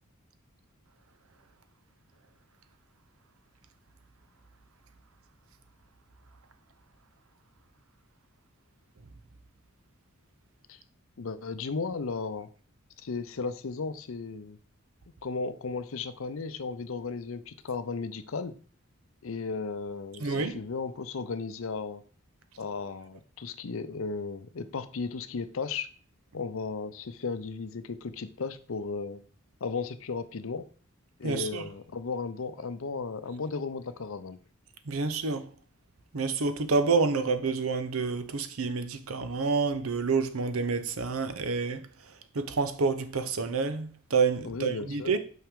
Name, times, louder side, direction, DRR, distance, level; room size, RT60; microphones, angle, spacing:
voice 1, 11.2-12.5 13.0-14.6 15.2-18.6 19.2-22.0 22.6-25.9 26.3-29.2 29.6-30.7 31.2-34.4 44.4-45.1, left 4 dB, 65° left, 0.6 m, -35 dB
voice 2, 20.2-20.6 31.2-31.7 34.9-35.5 36.1-45.2, right 4 dB, 75° right, 0.7 m, -28 dB
5.8 x 5.5 x 3.6 m
head